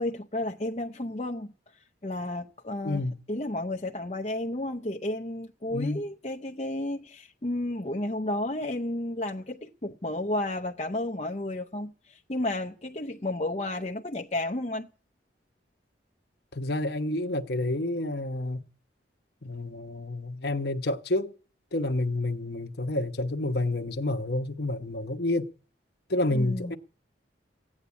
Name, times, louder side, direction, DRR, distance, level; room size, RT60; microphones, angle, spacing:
voice 1, 0.0-1.5 2.0-14.9 26.3-26.8, left 1 dB, 35° left, 0.7 m, -32 dB
voice 2, 2.8-3.2 5.7-6.0 16.5-18.6 19.4-21.3 21.7-25.5 26.1-26.8, left 2 dB, 55° left, 1.0 m, -29 dB
16.0 x 8.6 x 9.4 m
head